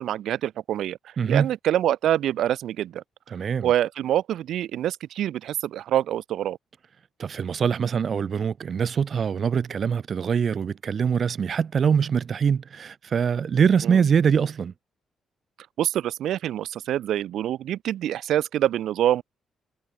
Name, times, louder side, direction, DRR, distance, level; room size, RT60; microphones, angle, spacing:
voice 1, 0.0-3.0 3.6-6.6 13.8-14.0 15.8-19.2, right 11 dB, 75° right, 3.8 m, -25 dB
voice 2, 1.2-1.5 3.3-3.7 7.2-14.7, right 7 dB, 45° right, 5.3 m, -23 dB
cardioid pair, 135°, 0 cm